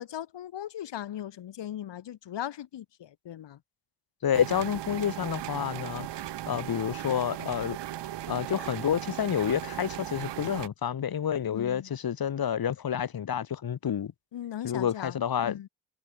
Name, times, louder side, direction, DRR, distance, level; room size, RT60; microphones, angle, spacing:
voice 1, 0.0-3.6 11.5-11.9 14.3-15.2 15.4-15.7, left 11 dB, 70° left, 5.8 m, -38 dB
voice 2, 4.2-7.8 8.3-14.1 14.6-15.6, left 8 dB, 50° left, 2.3 m, -29 dB
sound 1, 4.3-10.7, right 13 dB, 70° right, 1.7 m, -37 dB
supercardioid pair, 55°, 44 cm